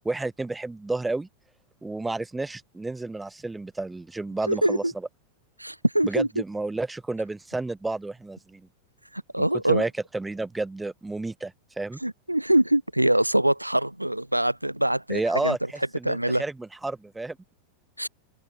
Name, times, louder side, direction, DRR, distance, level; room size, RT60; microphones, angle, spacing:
voice 1, 0.0-1.3 1.8-4.8 6.0-8.7 9.4-12.0 15.1-17.4, right 2 dB, 10° right, 1.2 m, -31 dB
voice 2, 4.5-4.9 5.6-6.3 9.1-9.8 12.0-15.6 16.0-16.4 18.0-18.1, right 1 dB, 85° right, 0.4 m, -24 dB
open air
figure-of-eight pair, 90°, 0 cm